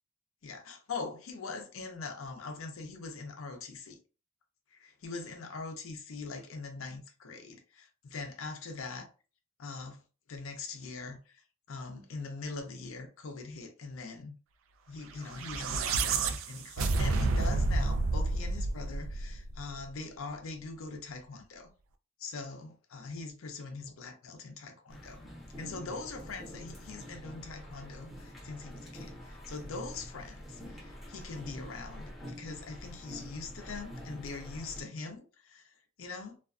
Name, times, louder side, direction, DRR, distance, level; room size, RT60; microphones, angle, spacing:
voice 1, 0.4-4.0 4.7-9.1 9.6-10.0 10.3-14.4 14.9-21.7 22.2-25.2 25.6-36.4, left 4 dB, 75° left, 0.6 m, -42 dB
sound 1, 15.2-19.7, right 3 dB, 70° right, 0.3 m, -30 dB
sound 2, 24.9-34.8, equal, ahead, 0.8 m, -46 dB
2.4 x 2.3 x 2.4 m
head